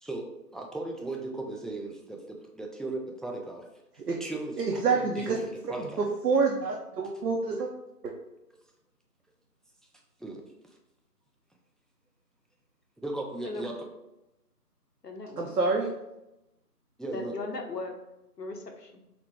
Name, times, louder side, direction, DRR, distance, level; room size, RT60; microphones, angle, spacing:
voice 1, 0.0-3.7 4.1-6.0 10.2-10.4 13.0-13.8 17.0-17.3, right 2 dB, ahead, 1 dB, 0.3 m, -37 dB
voice 2, 4.6-5.4 6.0-7.7 15.4-15.9, right 4 dB, 70° right, 0 dB, 0.7 m, -27 dB
voice 3, 15.0-15.5 17.1-17.9 18.4-18.9, left 3 dB, 75° left, 3 dB, 0.8 m, -37 dB
3.8 x 2.1 x 3.4 m, 0.91 s
figure-of-eight pair, 180°, 48 cm